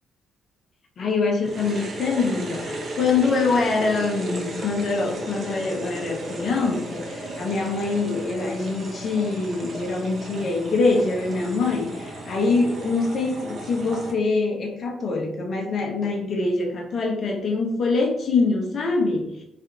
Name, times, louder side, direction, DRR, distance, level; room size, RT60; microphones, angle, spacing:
voice 1, 1.0-19.3, left 3 dB, 45° left, 2 dB, 0.6 m, -24 dB
sound 1, 1.4-14.1, right 1 dB, 45° right, 0.7 m, -35 dB
3.3 x 2.4 x 2.8 m, 0.85 s
figure-of-eight pair, 45°, 0 cm